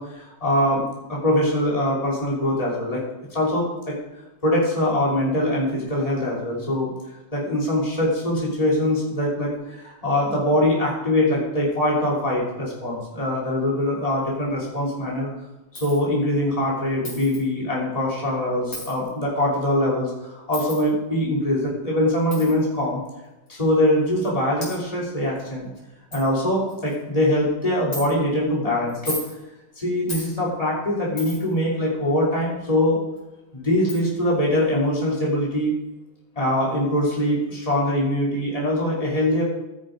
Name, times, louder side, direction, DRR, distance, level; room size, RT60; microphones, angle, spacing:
voice 1, 0.0-3.0 3.3-4.0 4.4-6.9 7.3-15.3 15.7-23.0 23.5-25.7 26.1-29.2 29.8-33.0 33.5-35.7 36.3-39.4, left 1 dB, 20° left, -5 dB, 3.1 m, -23 dB
Coin (dropping), 15.7-16.0 17.0-17.4 18.7-18.9 20.5-20.8 22.3-22.5 23.5-23.6 24.2-24.3 24.6-24.8 25.4-25.5 25.8-25.9 26.1-26.2 26.7-27.0 27.9-28.0 28.9-29.3 30.1-30.3 31.2-31.5 33.2-33.3 33.9-34.0, left 1 dB, 45° left, 4.6 m, -34 dB
15.0 x 6.5 x 5.0 m, 0.98 s
omnidirectional pair, 2.1 m